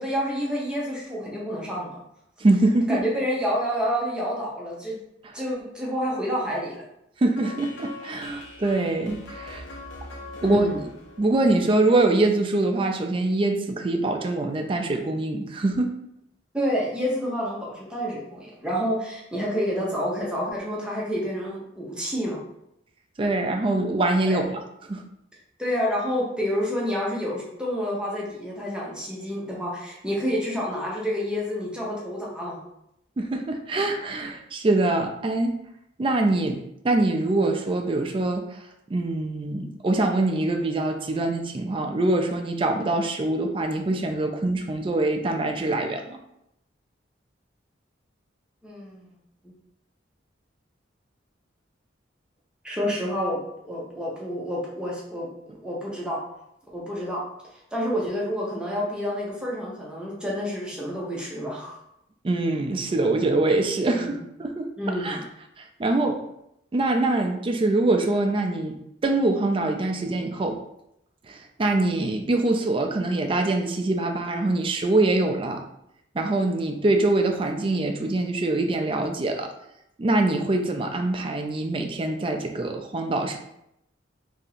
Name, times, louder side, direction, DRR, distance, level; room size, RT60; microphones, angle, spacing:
voice 1, 0.0-2.0 2.9-4.9 5.3-6.8 10.4-10.9 16.5-22.4 24.2-24.5 25.6-32.6 48.6-49.1 49.4-49.5 52.6-56.2 56.7-57.2 57.5-61.8 63.9-64.2 64.8-65.2, equal, 5° right, -5 dB, 0.7 m, -29 dB
voice 2, 2.4-3.0 7.2-9.6 10.4-10.7 11.2-15.9 23.2-24.6 24.9-25.1 33.2-35.5 36.0-38.6 38.9-46.2 62.2-64.7 65.0-65.2 65.6-66.2 66.7-70.6 71.3-75.6 76.1-79.5 80.0-83.4, right 2 dB, 25° right, 4 dB, 0.3 m, -24 dB
sound 1, 7.4-12.3, left 2 dB, 75° left, 0.7 m, -42 dB
2.8 x 2.6 x 4.0 m, 0.80 s
head